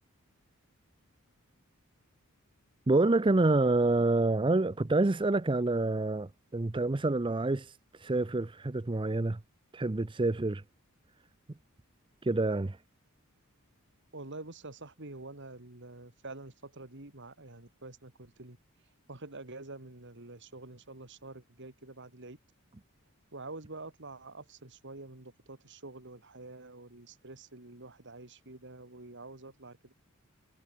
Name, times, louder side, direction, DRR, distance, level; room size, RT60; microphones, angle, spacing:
voice 1, 2.9-9.4 9.7-10.6 12.2-12.8, right 2 dB, 25° right, 0.6 m, -27 dB
voice 2, 14.1-18.6 19.1-22.4 23.3-29.9, right 2 dB, 55° right, 2.7 m, -47 dB
head